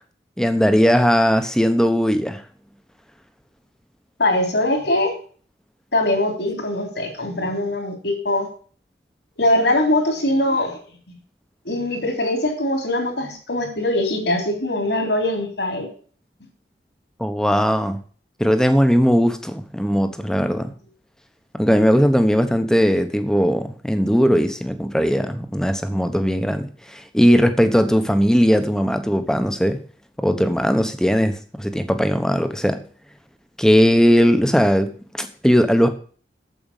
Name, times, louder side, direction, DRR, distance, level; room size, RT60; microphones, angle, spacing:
voice 1, 0.4-2.4 17.2-18.0 18.4-20.7 21.5-29.8 30.2-32.8 33.6-35.9, equal, 5° left, 8 dB, 1.0 m, -18 dB
voice 2, 4.2-5.1 5.9-8.5 9.4-10.8 11.7-15.9, left 1 dB, 70° left, 3 dB, 3.7 m, -22 dB
9.1 x 7.8 x 7.3 m, 0.43 s
head